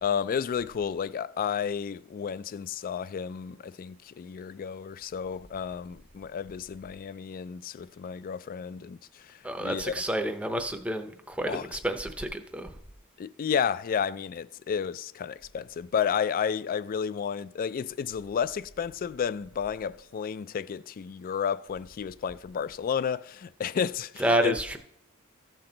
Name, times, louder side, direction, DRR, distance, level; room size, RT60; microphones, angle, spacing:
voice 1, 0.0-9.0 9.6-9.9 11.5-11.7 13.2-24.5, left 7 dB, 40° left, 0.3 m, -31 dB
voice 2, 9.4-12.7 24.2-24.8, right 1 dB, 5° right, 0.6 m, -29 dB
14.5 x 6.0 x 3.9 m
head